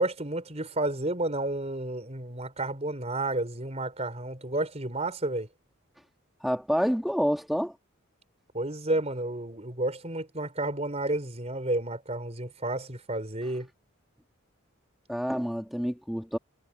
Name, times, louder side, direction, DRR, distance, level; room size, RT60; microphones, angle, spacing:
voice 1, 0.0-5.5 8.5-13.7, right 2 dB, 30° right, 4.3 m, -31 dB
voice 2, 6.4-7.7 15.1-16.4, equal, ahead, 1.7 m, -28 dB
head